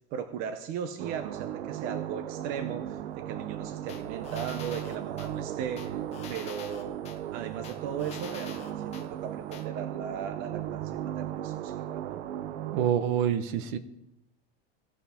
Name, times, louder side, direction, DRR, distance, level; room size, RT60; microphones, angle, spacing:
voice 1, 0.1-6.0 6.3-7.0 7.3-12.2, right 8 dB, 30° right, 8 dB, 0.6 m, -37 dB
sound 1, 1.0-12.9, right 11 dB, 80° right, 0.8 m, -36 dB
sound 2, 3.9-5.3 5.8-7.2 7.6-9.1 9.5-9.6, left 7 dB, 20° left, 1.1 m, -45 dB
voice 2, 12.7-13.8, right 9 dB, 50° right, 11 dB, 1.0 m, -26 dB
16.5 x 5.7 x 4.3 m, 0.88 s
supercardioid pair, 175°, 32 cm